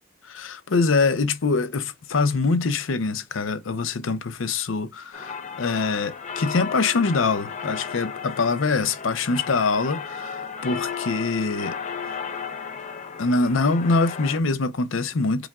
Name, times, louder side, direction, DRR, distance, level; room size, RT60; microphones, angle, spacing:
voice 1, 0.3-11.8 13.2-15.5, left 3 dB, 85° left, 0.6 m, -24 dB
sound 1, 5.1-14.4, left 6 dB, 35° left, 0.5 m, -34 dB
5.0 x 2.3 x 3.5 m
head